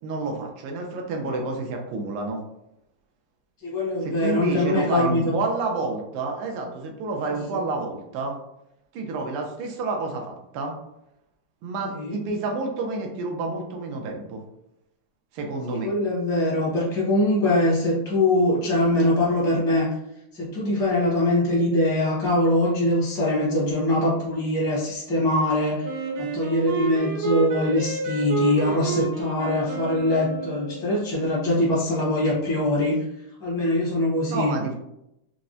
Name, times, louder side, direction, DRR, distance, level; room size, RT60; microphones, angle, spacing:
voice 1, 0.0-2.4 4.0-8.4 8.9-10.7 11.6-14.4 15.3-15.9 34.3-34.7, right 3 dB, 85° right, 2 dB, 1.5 m, -29 dB
voice 2, 3.6-5.2 11.9-12.2 15.7-19.9 20.3-25.9 26.2-33.0 33.4-34.5, left 1 dB, 5° left, -6 dB, 0.3 m, -23 dB
Wind instrument woodwind instrument, 25.8-30.9, right 5 dB, 70° right, 1.3 m, -30 dB
4.5 x 2.0 x 2.5 m, 0.83 s
omnidirectional pair, 2.4 m